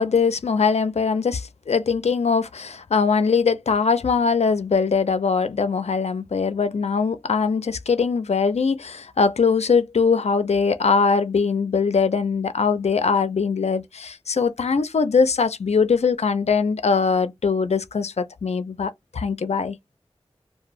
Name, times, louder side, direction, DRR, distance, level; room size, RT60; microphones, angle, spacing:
voice 1, 0.0-19.8, left 5 dB, 85° left, 0.4 m, -21 dB
2.5 x 2.1 x 3.0 m
wide cardioid pair, 40°, 11 cm